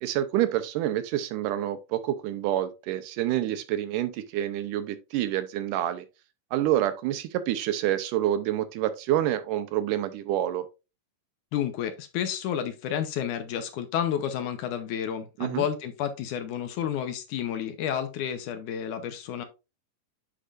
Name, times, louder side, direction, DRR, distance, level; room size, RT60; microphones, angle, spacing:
voice 1, 0.0-6.1 6.5-10.7 15.4-15.6, right 12 dB, 80° right, 2.1 m, -27 dB
voice 2, 11.5-19.4, left 9 dB, 75° left, 2.1 m, -30 dB
10.0 x 4.8 x 2.4 m
omnidirectional pair, 3.9 m